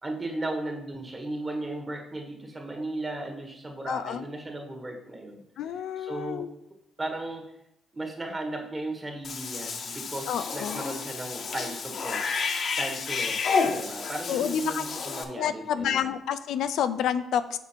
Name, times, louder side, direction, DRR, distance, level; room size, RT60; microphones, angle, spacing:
voice 1, 0.0-5.4 6.0-6.5 7.0-7.5 7.9-12.4 12.8-16.2, right 2 dB, 25° right, 2 dB, 1.4 m, -36 dB
voice 2, 3.9-4.2 5.6-6.5 10.3-10.8 14.3-14.8 15.4-17.6, left 9 dB, 80° left, 11 dB, 0.3 m, -29 dB
Cat / Bathtub (filling or washing), 9.2-15.2, left 5 dB, 55° left, 0.7 m, -30 dB
6.0 x 4.6 x 4.4 m, 0.78 s
cardioid pair, 90°, 0 cm